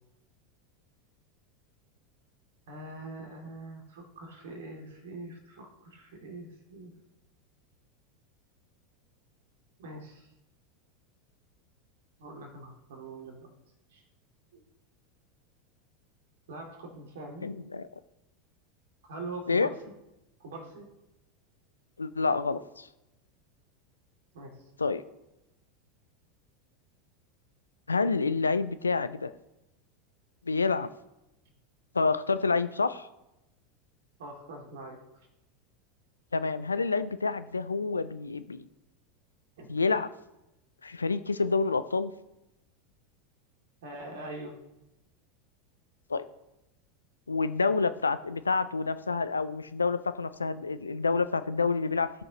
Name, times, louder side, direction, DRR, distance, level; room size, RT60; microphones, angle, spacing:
voice 1, 2.7-6.9 9.8-10.3 12.2-13.5 13.9-14.0 14.5-14.6 16.5-17.5 19.1-19.9 20.4-20.9 24.3-24.6 34.2-35.0 39.6-39.7 43.8-44.6, right 2 dB, 60° right, 2 dB, 2.4 m, -43 dB
voice 2, 17.4-17.9 19.5-19.7 22.0-22.9 24.8-25.0 27.9-29.3 30.5-30.9 31.9-33.1 36.3-38.6 39.7-40.1 40.8-42.1 46.1-46.3 47.3-52.1, left 4 dB, 80° left, 13 dB, 0.4 m, -28 dB
17.0 x 6.3 x 3.0 m, 0.94 s
figure-of-eight pair, 85°, 0 cm